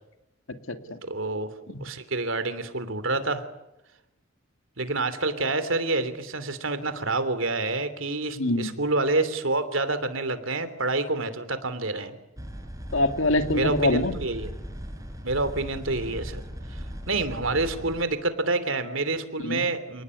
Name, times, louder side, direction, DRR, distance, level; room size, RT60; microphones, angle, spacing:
voice 1, 0.5-1.0 1.7-1.8 8.4-8.7 12.9-14.2 19.4-19.6, left 2 dB, 65° left, 8 dB, 2.3 m, -25 dB
voice 2, 1.0-1.5 1.8-3.4 4.8-12.1 13.5-14.5 15.2-16.4 16.7-16.8 17.1-20.0, right 2 dB, 65° right, 11 dB, 3.2 m, -28 dB
sound 1, 12.4-18.0, equal, 15° right, 4.2 m, -38 dB
29.5 x 19.5 x 9.8 m, 0.91 s
head